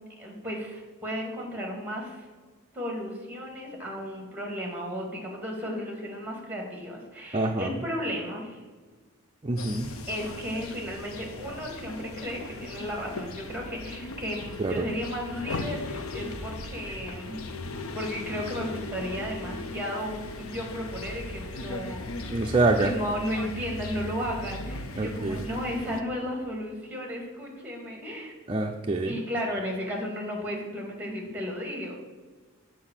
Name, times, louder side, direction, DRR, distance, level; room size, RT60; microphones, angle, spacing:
voice 1, 0.2-2.3 2.7-8.6 10.1-17.4 17.9-22.3 22.8-28.3 29.0-31.9, equal, 10° right, 0 dB, 2.1 m, -34 dB
voice 2, 7.3-7.7 9.4-9.9 14.6-14.8 22.3-22.9 25.0-25.4 28.5-29.2, right 2 dB, 25° right, 2 dB, 0.5 m, -25 dB
sound 1, 9.6-26.0, left 2 dB, 70° left, 0.8 m, -38 dB
8.5 x 4.7 x 7.4 m, 1.4 s
head